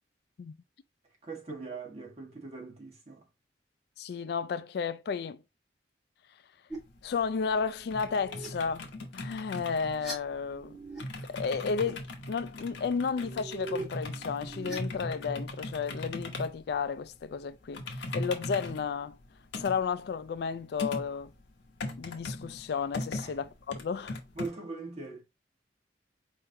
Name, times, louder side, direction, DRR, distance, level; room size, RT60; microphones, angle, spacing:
voice 1, 1.2-3.2 23.2-23.4 24.3-25.2, right 3 dB, 35° right, 1.5 m, -41 dB
voice 2, 4.0-5.4 7.0-10.8 11.3-19.2 19.5-21.3 22.0-24.2, left 5 dB, 60° left, 0.3 m, -33 dB
sound 1, 6.7-24.5, left 2 dB, 80° left, 0.9 m, -40 dB
sound 2, 6.7-6.8 7.8-8.5 9.6-11.0 11.3-11.9 13.1-15.4, right 2 dB, 5° right, 2.0 m, -43 dB
4.6 x 3.7 x 2.7 m
head